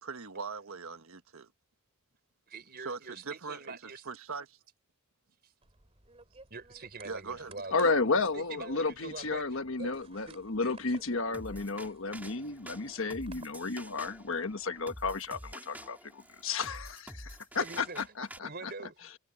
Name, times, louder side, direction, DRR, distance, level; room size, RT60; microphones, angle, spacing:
voice 1, 0.0-1.5 2.8-3.8 4.0-4.6 7.0-7.5, right 4 dB, 75° right, 1.4 m, -41 dB
voice 2, 2.5-4.0 5.4-5.5 6.5-7.8 8.0-9.4 9.8-9.9 10.3-10.4 10.6-10.7 12.1-12.2 17.6-18.0 18.4-19.2, right 3 dB, 45° right, 4.5 m, -44 dB
sound 1, 5.6-15.3, right 3 dB, 30° right, 2.5 m, -59 dB
voice 3, 7.7-18.7, left 3 dB, 65° left, 1.3 m, -32 dB
sound 2, 11.3-18.4, right 1 dB, 10° right, 2.6 m, -48 dB
head